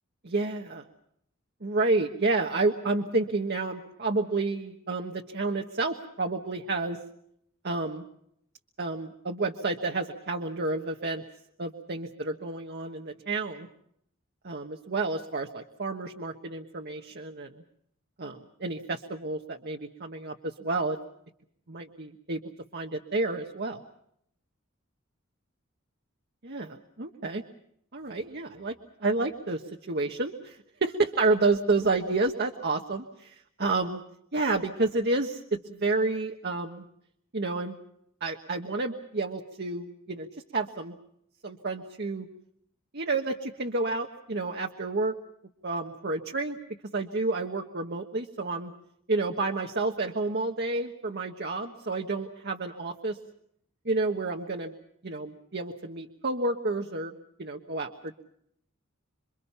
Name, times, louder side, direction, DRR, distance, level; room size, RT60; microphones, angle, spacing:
voice 1, 0.2-0.8 1.6-7.0 7.6-8.0 8.8-11.2 11.6-13.7 14.4-17.6 18.2-21.0 21.7-22.4 22.7-23.8 26.4-27.4 27.9-29.6 29.9-34.0 34.3-36.8 37.3-37.8 38.2-40.3 40.5-40.9 41.4-42.3 42.9-45.1 45.6-46.6 46.9-48.7 49.1-53.2 53.8-54.7 55.0-58.2, right 3 dB, 50° right, 2 dB, 1.3 m, -30 dB
28.0 x 23.5 x 5.6 m, 0.73 s
head